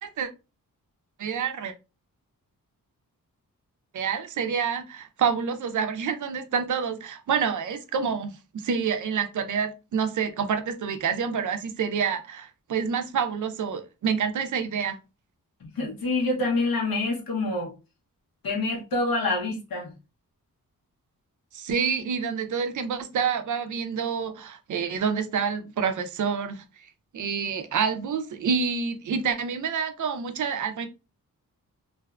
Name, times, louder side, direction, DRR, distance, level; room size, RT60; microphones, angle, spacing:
voice 1, 1.2-1.7 3.9-15.0 21.5-26.6 27.1-30.9, right 6 dB, 60° right, 0.5 m, -28 dB
voice 2, 15.6-17.7 18.4-19.9, left 2 dB, 85° left, 1.0 m, -26 dB
2.5 x 2.1 x 2.3 m
wide cardioid pair, 85°, 34 cm